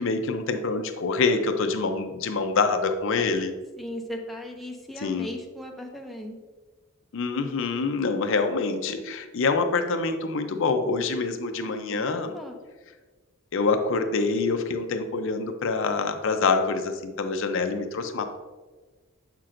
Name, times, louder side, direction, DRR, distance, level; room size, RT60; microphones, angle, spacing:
voice 1, 0.0-3.5 5.0-5.3 7.1-12.4 13.5-18.4, left 4 dB, 60° left, 7 dB, 0.5 m, -26 dB
voice 2, 3.8-6.4 11.6-12.5, left 1 dB, ahead, 0 dB, 0.5 m, -38 dB
7.4 x 5.8 x 2.5 m, 1.3 s
head